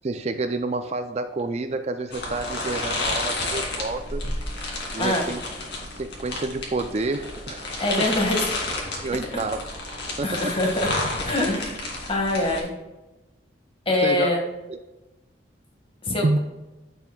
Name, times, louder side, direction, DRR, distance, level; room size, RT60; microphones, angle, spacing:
voice 1, 0.0-4.2 4.9-5.4 6.0-8.1 9.0-9.6 10.2-10.6 12.4-12.5 14.0-14.3 14.7-14.8 16.2-16.4, right 3 dB, 35° right, 8 dB, 0.4 m, -28 dB
sound 1, 2.1-12.6, left 2 dB, 60° left, 2.2 m, -31 dB
voice 2, 7.8-8.4 10.2-10.9 11.2-11.8 12.1-12.7 13.8-14.4 16.0-16.4, left 2 dB, 30° left, 1 dB, 1.6 m, -24 dB
9.8 x 7.1 x 2.3 m, 1.0 s
head